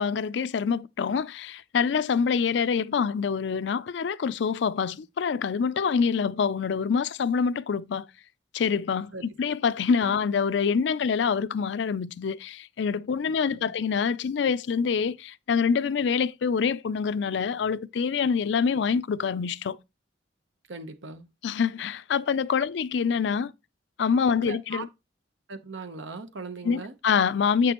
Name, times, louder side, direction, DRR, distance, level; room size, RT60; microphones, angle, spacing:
voice 1, 0.0-8.1 8.5-19.8 21.4-23.5 24.0-24.9 26.6-27.7, left 6 dB, 65° left, 0.4 m, -26 dB
voice 2, 20.7-21.3 24.4-24.9 25.5-26.9, right 3 dB, 85° right, 0.9 m, -39 dB
8.2 x 6.0 x 3.0 m
head